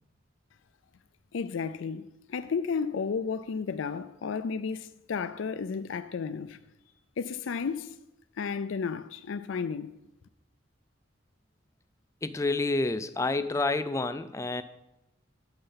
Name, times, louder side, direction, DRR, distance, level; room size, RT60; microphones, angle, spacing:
voice 1, 1.3-6.6 7.2-8.0 8.4-10.0, left 5 dB, 85° left, 0.4 m, -33 dB
voice 2, 12.2-14.6, left 3 dB, 15° left, 0.4 m, -29 dB
8.7 x 8.0 x 5.7 m
head